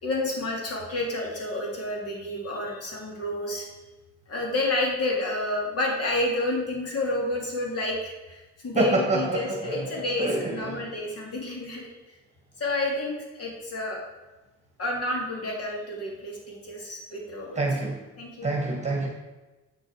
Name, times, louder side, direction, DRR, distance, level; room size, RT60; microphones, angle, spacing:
voice 1, 0.0-3.7 4.3-11.8 12.6-14.0 14.8-17.6 18.2-18.5, left 2 dB, 50° left, -1 dB, 3.1 m, -30 dB
voice 2, 8.7-9.9 10.2-10.9 17.5-18.0 18.4-19.1, right 2 dB, 20° right, 0 dB, 1.7 m, -27 dB
8.3 x 6.4 x 4.9 m, 1.1 s
cardioid pair, 90°, 30 cm